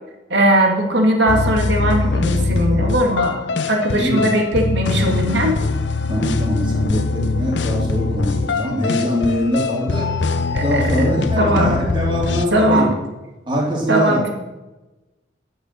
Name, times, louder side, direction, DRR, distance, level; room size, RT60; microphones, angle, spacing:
voice 1, 0.3-3.3 3.7-5.6 10.5-11.1 11.4-11.8 12.5-12.9 13.9-14.3, right 1 dB, 70° right, 2 dB, 2.1 m, -18 dB
sound 1, 1.3-12.5, left 3 dB, 75° left, 0.6 m, -22 dB
voice 2, 3.9-4.3 6.1-10.1 10.6-12.9 13.5-14.2, equal, 25° right, -2 dB, 2.7 m, -22 dB
11.0 x 7.0 x 6.6 m, 1.1 s
head